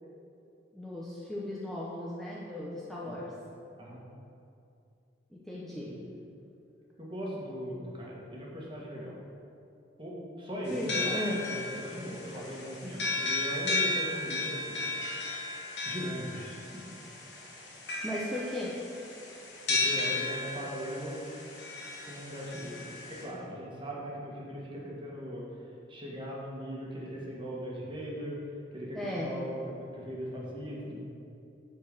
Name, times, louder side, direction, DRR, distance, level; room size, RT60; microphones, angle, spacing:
voice 1, 0.7-3.3 5.3-5.9 10.7-11.4 18.0-18.7 28.9-29.4, left 1 dB, ahead, -7 dB, 0.9 m, -36 dB
voice 2, 7.0-9.1 10.0-14.9 15.8-16.8 17.4-17.5 19.7-21.2 22.0-25.5 25.9-28.4 28.7-31.0, equal, 30° right, -4 dB, 1.6 m, -39 dB
sound 1, 10.7-23.2, left 2 dB, 65° left, 1.9 m, -35 dB
8.4 x 4.6 x 6.8 m, 2.6 s
head